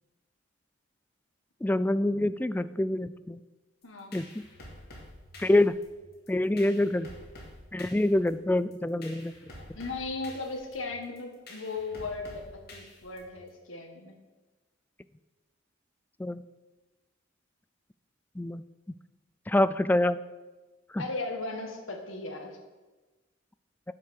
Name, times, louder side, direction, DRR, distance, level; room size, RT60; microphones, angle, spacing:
voice 1, 1.6-3.4 4.1-4.5 5.4-5.8 6.3-7.1 7.7-9.3 16.2-16.4 18.4-18.6 19.5-20.2 20.9-21.0, left 1 dB, 10° left, 15 dB, 0.3 m, -26 dB
voice 2, 3.8-4.1 9.6-14.1 21.0-22.6, left 3 dB, 85° left, 3 dB, 1.8 m, -37 dB
sound 1, 3.8-13.5, left 1 dB, 55° left, 2.9 m, -49 dB
9.7 x 8.0 x 6.4 m, 1.2 s
head